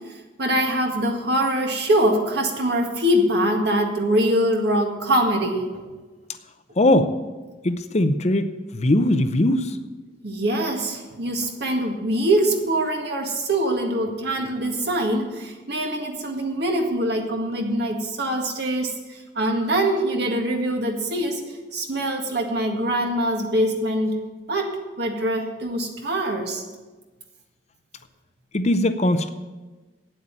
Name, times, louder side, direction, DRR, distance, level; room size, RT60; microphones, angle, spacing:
voice 1, 0.4-5.8 10.2-21.4 21.7-24.2 24.5-26.6, right 1 dB, 55° right, 2 dB, 1.8 m, -23 dB
voice 2, 6.8-7.1 7.6-9.8 28.5-29.3, left 1 dB, 35° left, 10 dB, 0.6 m, -20 dB
8.9 x 8.0 x 8.9 m, 1.2 s
head